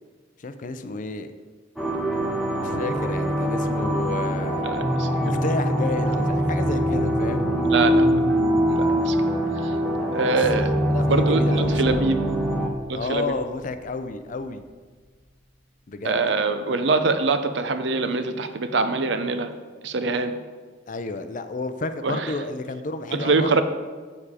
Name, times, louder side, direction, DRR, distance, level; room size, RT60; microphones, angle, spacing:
voice 1, 0.4-1.3 2.6-4.7 5.2-7.5 10.1-12.0 12.9-14.6 15.9-16.2 20.9-23.6, left 3 dB, 45° left, 10 dB, 0.5 m, -31 dB
sound 1, 1.8-12.7, equal, ahead, 0.9 m, -23 dB
voice 2, 4.6-5.4 7.6-8.2 8.7-9.2 10.1-10.7 11.1-12.2 12.9-13.2 16.0-19.5 19.8-20.4 22.0-22.3 23.1-23.6, right 3 dB, 65° right, 9 dB, 0.6 m, -24 dB
Piano, 4.8-12.2, right 1 dB, 25° right, 2.0 m, -33 dB
sound 2, 11.6-15.9 16.1-16.2, equal, 85° left, 1.0 m, -43 dB
7.2 x 6.8 x 4.9 m, 1.5 s
head